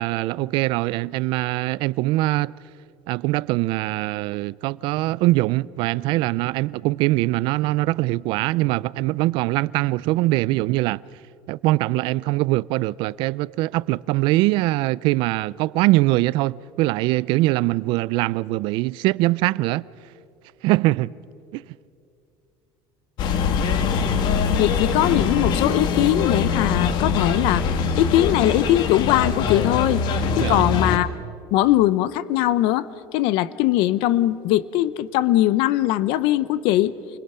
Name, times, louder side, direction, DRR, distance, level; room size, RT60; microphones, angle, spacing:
voice 1, 0.0-2.5 3.1-11.0 11.5-19.8 20.6-21.1 21.5-21.6 30.4-30.7, right 19 dB, 65° right, 0.4 m, -22 dB
sound 1, 23.2-31.0, left 5 dB, 55° left, 1.5 m, -23 dB
voice 2, 24.6-27.7 28.0-30.0 30.4-31.1 31.5-32.9 33.1-36.9, left 14 dB, 75° left, 0.8 m, -20 dB
28.5 x 21.0 x 5.6 m
cardioid pair, 145°, 9 cm